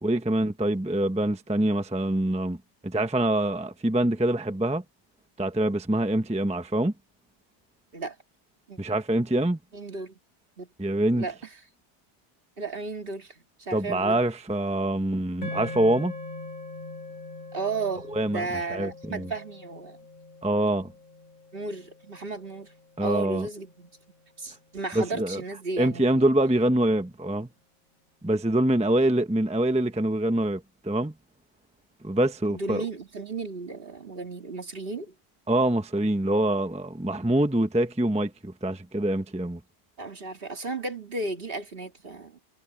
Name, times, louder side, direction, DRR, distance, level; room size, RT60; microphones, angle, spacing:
voice 1, 0.0-4.8 5.4-6.9 8.8-9.6 10.8-11.2 13.7-16.1 18.1-19.3 20.4-20.9 23.0-23.5 24.9-25.4 25.8-27.5 28.2-31.1 32.0-32.9 35.5-39.6, right 1 dB, 5° right, 0.9 m, -25 dB
voice 2, 9.7-10.1 10.6-10.7 11.2-11.3 12.6-14.2 17.5-18.1 18.3-20.0 21.5-22.7 23.0-23.9 24.4-26.3 32.5-35.1 40.0-42.4, right 3 dB, 50° right, 2.1 m, -34 dB
sound 1, 15.4-23.8, left 2 dB, 40° left, 5.5 m, -42 dB
omnidirectional pair, 1.2 m